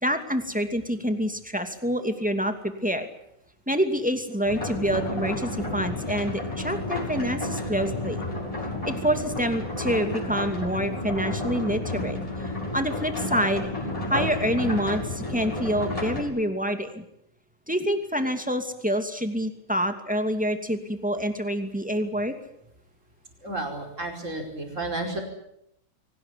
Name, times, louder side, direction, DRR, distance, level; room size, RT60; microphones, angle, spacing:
voice 1, 0.0-3.1 3.7-8.2 8.9-13.7 14.1-17.0 17.7-22.3, equal, 5° right, 7 dB, 2.4 m, -27 dB
sound 1, 4.5-16.2, left 1 dB, 15° left, 7.5 m, -31 dB
voice 2, 23.4-25.2, right 2 dB, 35° right, 3 dB, 5.4 m, -32 dB
24.0 x 19.0 x 10.0 m, 0.76 s
omnidirectional pair, 2.4 m